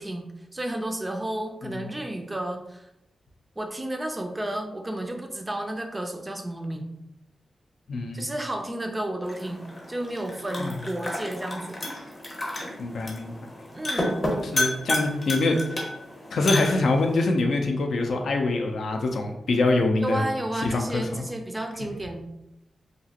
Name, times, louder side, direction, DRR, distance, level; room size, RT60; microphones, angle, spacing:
voice 1, 0.0-2.9 3.6-6.9 8.1-11.8 13.7-14.3 20.0-22.2, right 1 dB, 15° right, 4 dB, 0.4 m, -32 dB
voice 2, 1.6-1.9 7.9-8.3 10.6-10.7 12.8-13.3 14.4-15.8 16.3-20.3 20.6-21.2, left 2 dB, 70° left, 3 dB, 0.4 m, -25 dB
sound 1, 9.2-17.2, left 1 dB, 35° left, 0.8 m, -31 dB
2.9 x 2.4 x 2.8 m, 0.87 s
wide cardioid pair, 120°, 0 cm